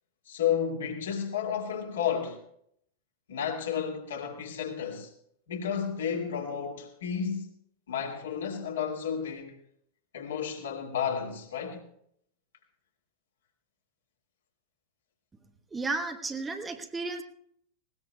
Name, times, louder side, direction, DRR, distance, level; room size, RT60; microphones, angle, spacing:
voice 1, 0.3-2.4 3.3-5.1 5.5-7.5 7.9-9.5 10.1-11.8, left 8 dB, 65° left, 2.4 m, -32 dB
voice 2, 15.7-17.2, right 3 dB, 15° right, 1.2 m, -33 dB
20.0 x 19.0 x 2.3 m
figure-of-eight pair, 90°, 0 cm